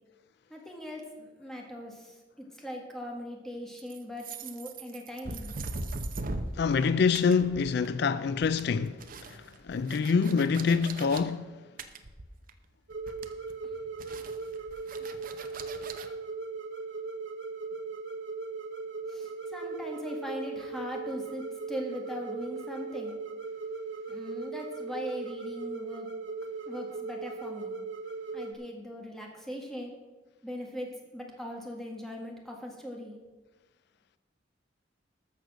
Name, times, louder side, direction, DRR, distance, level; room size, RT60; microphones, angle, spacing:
voice 1, 0.5-5.5 19.1-23.2 24.1-26.1 26.7-27.7 28.3-29.9 30.4-30.9 31.1-33.2, equal, ahead, 1.8 m, -40 dB
sound 1, 3.8-6.9 7.1-8.0 8.3-11.2 11.8-12.7 12.9-13.5 14.0-16.1, right 2 dB, 50° right, 0.8 m, -40 dB
voice 2, 6.6-9.0 9.3-11.5, left 5 dB, 60° left, 0.4 m, -26 dB
sound 2, 12.9-28.5, right 4 dB, 80° right, 1.3 m, -38 dB
13.0 x 6.5 x 6.2 m
head